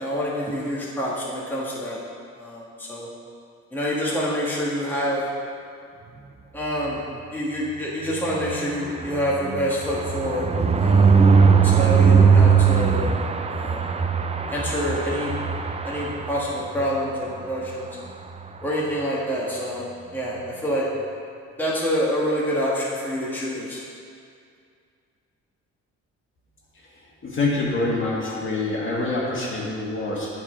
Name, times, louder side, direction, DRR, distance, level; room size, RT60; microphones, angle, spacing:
voice 1, 0.0-2.0 2.4-3.1 3.7-5.2 6.5-7.0 7.3-10.5 10.7-11.2 11.6-13.1 13.5-13.8 14.5-15.3 15.8-17.9 18.6-19.9 20.1-20.8 21.6-23.8, equal, 5° left, -6 dB, 1.5 m, -27 dB
sound 1, 8.0-16.9 17.3-17.5 17.7-17.8 18.1-18.4, right 5 dB, 20° right, 0.4 m, -20 dB
voice 2, 27.2-30.3, left 2 dB, 40° left, -4 dB, 1.9 m, -25 dB
9.0 x 4.3 x 5.0 m, 2.3 s
cardioid pair, 90°, 30 cm